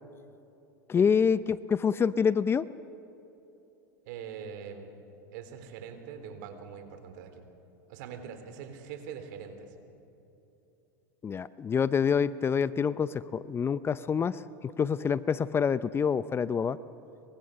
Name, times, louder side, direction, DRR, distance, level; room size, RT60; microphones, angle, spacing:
voice 1, 0.9-2.6 11.2-16.8, left 6 dB, 25° left, 16 dB, 0.6 m, -27 dB
voice 2, 4.1-5.0 5.3-7.5 7.9-9.7, right 7 dB, 65° right, 8 dB, 3.7 m, -43 dB
28.5 x 24.5 x 6.7 m, 3.0 s
hypercardioid pair, 105°, 10 cm